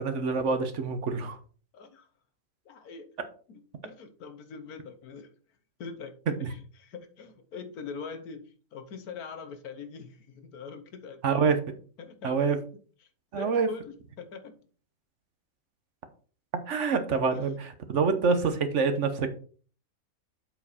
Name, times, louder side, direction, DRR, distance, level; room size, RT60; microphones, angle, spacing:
voice 1, 0.0-1.4 6.4-6.5 11.2-11.6 12.2-12.6 13.3-13.7 16.7-19.4, right 5 dB, 55° right, 9 dB, 1.2 m, -26 dB
voice 2, 1.7-2.1 2.6-3.1 3.5-5.3 5.8-6.1 6.5-11.5 12.0-12.5 13.3-14.6 17.3-17.5, left 5 dB, 85° left, 9 dB, 1.5 m, -43 dB
7.7 x 4.7 x 4.2 m, 0.41 s
omnidirectional pair, 1.5 m